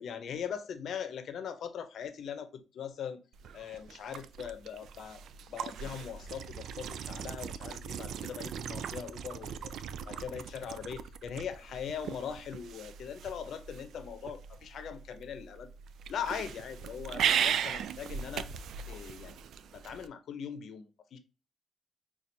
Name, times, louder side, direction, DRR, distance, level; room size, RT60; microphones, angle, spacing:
voice 1, 0.0-3.2 3.5-5.2 5.5-15.7 16.1-18.5 18.9-19.3 19.7-21.2, left 7 dB, 65° left, 0.6 m, -41 dB
sound 1, 3.3-20.1, right 8 dB, 70° right, 0.3 m, -38 dB
5.8 x 2.4 x 2.7 m
cardioid pair, 90°, 0 cm